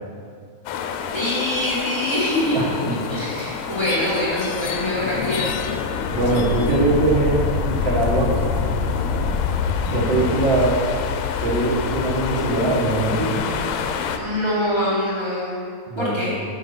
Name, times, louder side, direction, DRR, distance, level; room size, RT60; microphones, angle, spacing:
sound 1, 0.7-14.2, left 6 dB, 90° left, 2.1 m, -26 dB
voice 1, 1.1-5.5 14.2-15.5 16.0-16.3, left 1 dB, 25° left, -9 dB, 0.6 m, -24 dB
voice 2, 6.1-8.3 9.9-10.8 11.4-13.3 15.9-16.1, right 2 dB, 60° right, -7 dB, 1.2 m, -21 dB
5.9 x 5.5 x 6.6 m, 2.1 s
omnidirectional pair, 3.5 m